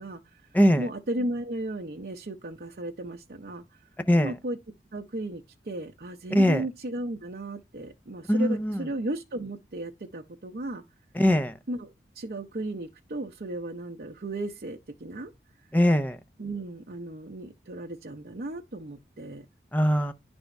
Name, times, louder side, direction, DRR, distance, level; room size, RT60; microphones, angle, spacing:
voice 1, 0.0-0.4 0.8-3.8 4.2-4.6 4.9-10.8 11.7-15.3 16.4-19.5, right 1 dB, 60° right, 0.7 m, -35 dB
voice 2, 0.5-0.9 4.1-4.3 6.3-6.6 8.3-8.8 11.2-11.5 15.7-16.2 19.7-20.1, equal, 10° left, 0.5 m, -21 dB
10.0 x 3.5 x 5.2 m
head